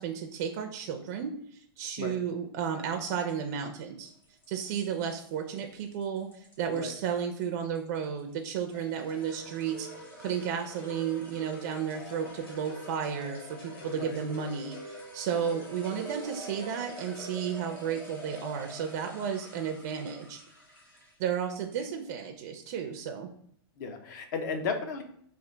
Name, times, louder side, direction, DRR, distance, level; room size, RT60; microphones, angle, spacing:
voice 1, 0.0-4.1 4.5-9.9 10.2-20.4 21.2-23.3, right 7 dB, 40° right, 3 dB, 0.4 m, -33 dB
sound 1, 4.1-21.3, right 2 dB, 15° left, 0.8 m, -48 dB
sound 2, 8.7-17.5, right 1 dB, 60° left, 1.2 m, -46 dB
voice 2, 23.8-25.0, left 4 dB, 45° left, 6 dB, 0.5 m, -34 dB
3.3 x 2.4 x 3.7 m, 0.66 s
supercardioid pair, 160°, 13 cm